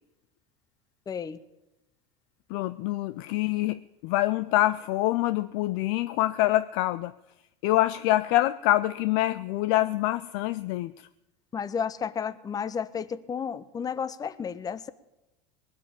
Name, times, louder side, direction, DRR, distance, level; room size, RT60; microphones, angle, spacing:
voice 1, 1.1-1.4 11.5-14.9, left 7 dB, 25° left, 16 dB, 0.8 m, -32 dB
voice 2, 2.5-7.1 7.6-10.9, left 16 dB, 70° left, 15 dB, 0.4 m, -25 dB
19.5 x 7.6 x 8.6 m, 0.97 s
supercardioid pair, 100°, 15 cm